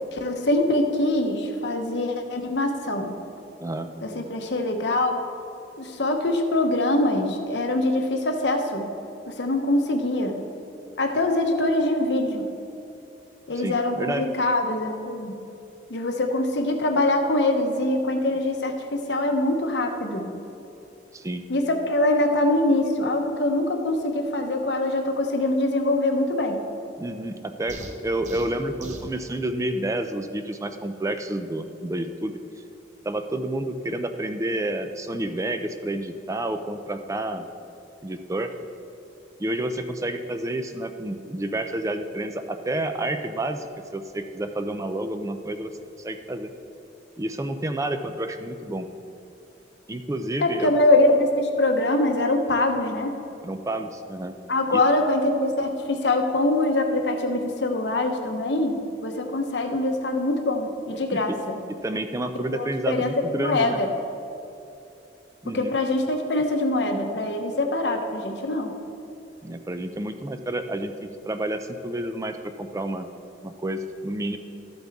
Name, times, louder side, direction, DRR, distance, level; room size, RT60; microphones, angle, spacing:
voice 1, 0.1-3.1 4.0-5.2 5.8-8.9 9.3-10.4 11.0-12.5 13.5-15.3 15.9-20.3 21.5-26.6 50.4-53.1 54.5-61.6 62.5-63.9 65.5-68.7, left 2 dB, 80° left, 4 dB, 1.0 m, -23 dB
voice 2, 13.6-14.2 21.1-21.4 27.0-32.4 33.0-37.4 38.0-38.5 39.4-43.7 43.9-45.7 46.0-46.5 47.2-48.9 49.9-50.7 53.4-54.4 54.7-54.8 61.1-61.4 61.8-63.8 65.4-65.8 69.4-70.9 71.2-73.1 73.4-74.4, right 1 dB, 20° right, 8 dB, 0.4 m, -29 dB
sound 1, 27.7-29.1, right 2 dB, 45° right, 0.9 m, -39 dB
13.0 x 7.9 x 3.6 m, 2.8 s
head